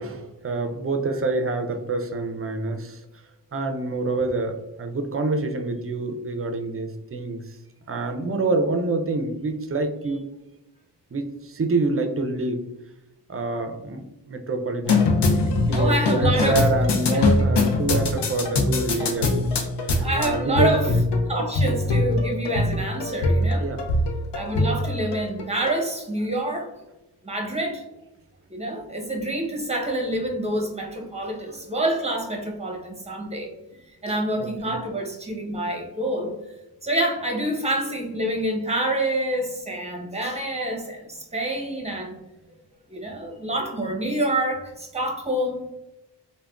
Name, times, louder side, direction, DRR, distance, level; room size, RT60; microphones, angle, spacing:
voice 1, 0.0-3.0 3.5-7.6 7.9-10.2 11.1-12.6 13.3-21.0 23.5-23.9 31.0-31.1 33.3-33.4 34.7-34.8, right 2 dB, 35° right, 5 dB, 0.5 m, -27 dB
sound 1, 14.8-25.8, left 2 dB, 75° left, 0.6 m, -23 dB
voice 2, 15.7-16.6 17.1-17.3 20.0-20.9 21.3-23.6 24.3-26.7 27.2-27.8 28.5-33.5 34.0-36.3 36.8-42.1 42.9-45.6, right 1 dB, 15° right, 1 dB, 0.9 m, -27 dB
3.4 x 2.2 x 2.4 m, 0.97 s
cardioid pair, 50°, 42 cm